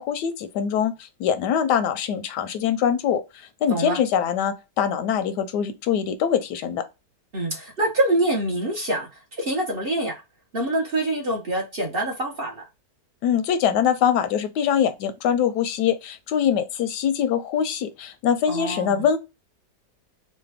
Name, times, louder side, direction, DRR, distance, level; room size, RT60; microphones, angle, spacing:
voice 1, 0.0-6.9 13.2-19.2, left 8 dB, 85° left, 1.2 m, -23 dB
voice 2, 3.7-4.0 7.3-9.1 9.4-10.2 10.5-12.6 18.5-19.0, right 1 dB, 45° right, 0.8 m, -25 dB
3.2 x 2.1 x 3.3 m
omnidirectional pair, 1.7 m